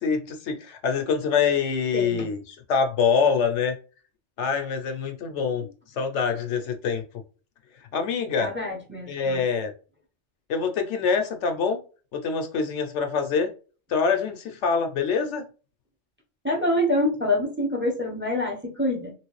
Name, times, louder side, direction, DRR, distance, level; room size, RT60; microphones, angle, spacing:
voice 1, 0.0-3.7 4.4-5.7 6.0-7.0 7.9-8.5 9.1-9.7 10.5-11.8 12.1-13.5 13.9-15.4, left 6 dB, 70° left, 0.9 m, -25 dB
voice 2, 1.9-2.3 8.4-9.4 16.4-19.1, left 1 dB, 10° right, 0.7 m, -26 dB
3.1 x 3.0 x 3.1 m
omnidirectional pair, 1.3 m